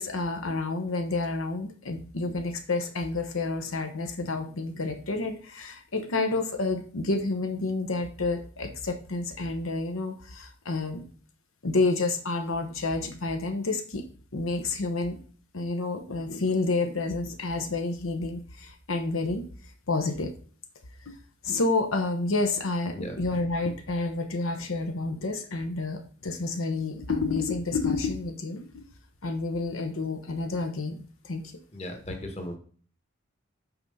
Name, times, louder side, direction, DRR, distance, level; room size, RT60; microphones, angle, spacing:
voice 1, 0.0-11.0 11.6-14.0 14.3-15.2 15.5-19.5 19.9-20.3 21.1-21.2 21.4-28.8 29.2-31.5, left 3 dB, 90° left, 6 dB, 0.9 m, -29 dB
voice 2, 31.7-32.6, left 1 dB, 30° left, 4 dB, 1.3 m, -36 dB
5.9 x 4.5 x 5.4 m, 0.43 s
head